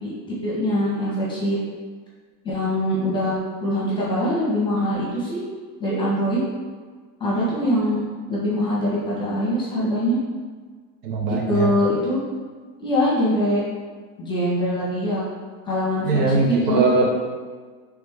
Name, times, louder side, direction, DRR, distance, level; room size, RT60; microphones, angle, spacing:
voice 1, 0.0-1.6 2.4-5.4 5.8-6.4 7.2-8.0 8.3-10.2 11.3-12.2 12.8-13.6 14.2-15.3 15.6-16.9, equal, 10° left, -7 dB, 0.8 m, -23 dB
voice 2, 11.0-11.7 16.0-17.1, right 3 dB, 85° right, -1 dB, 1.1 m, -21 dB
3.3 x 3.3 x 3.5 m, 1.5 s
supercardioid pair, 165°, 46 cm